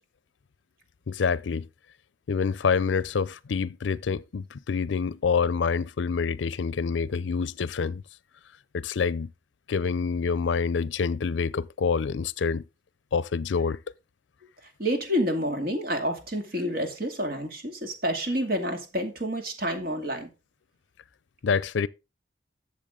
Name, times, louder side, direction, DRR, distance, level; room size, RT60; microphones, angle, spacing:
voice 1, 1.1-1.7 2.3-8.0 8.7-9.3 9.7-12.6 13.1-13.8 21.4-21.9, left 5 dB, 85° left, 0.5 m, -27 dB
voice 2, 14.8-20.3, equal, 50° right, 2.4 m, -28 dB
12.5 x 7.2 x 3.7 m
head